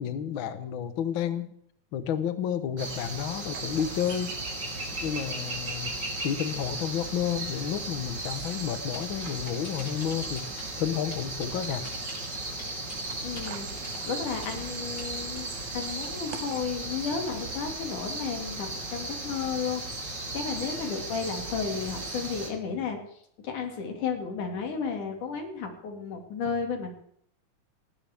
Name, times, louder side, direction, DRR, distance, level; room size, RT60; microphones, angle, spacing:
voice 1, 0.0-1.5 1.9-4.4 5.0-5.9 6.2-10.4 10.8-11.8, left 9 dB, 60° left, 10 dB, 1.4 m, -31 dB
sound 1, 2.8-22.5, right 2 dB, 35° right, 3.8 m, -36 dB
Human voice / Train, 3.5-4.3 8.2-8.8 10.0-10.4 13.5-16.6, right 10 dB, 65° right, 1.9 m, -46 dB
sound 2, 8.9-10.7 11.1-14.6 15.0-15.1 15.8-16.1, left 1 dB, 25° left, 6.2 m, -44 dB
voice 2, 13.2-13.7 14.1-19.8 20.3-23.0 23.4-26.9, left 6 dB, 80° left, 3 dB, 3.8 m, -33 dB
19.0 x 17.0 x 3.6 m, 0.69 s
omnidirectional pair, 3.5 m